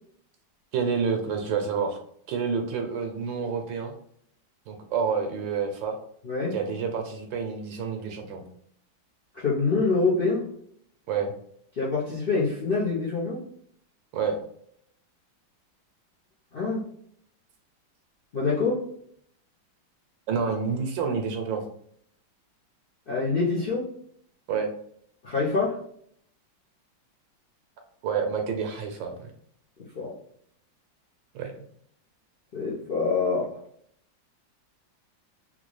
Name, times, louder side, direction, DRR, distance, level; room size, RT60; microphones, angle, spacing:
voice 1, 0.7-2.0 2.3-3.9 4.7-6.0 6.5-8.4 11.1-11.3 14.1-14.4 20.3-21.6 24.5-24.7 28.0-29.3 31.3-31.5, right 6 dB, 80° right, 4 dB, 1.3 m, -28 dB
voice 2, 6.2-6.5 9.3-10.5 11.8-13.4 16.5-16.8 18.3-18.9 23.1-23.9 25.2-25.8 29.9-30.1 32.5-33.5, left 4 dB, 65° left, -7 dB, 0.5 m, -25 dB
3.8 x 2.4 x 3.0 m, 0.67 s
omnidirectional pair, 2.1 m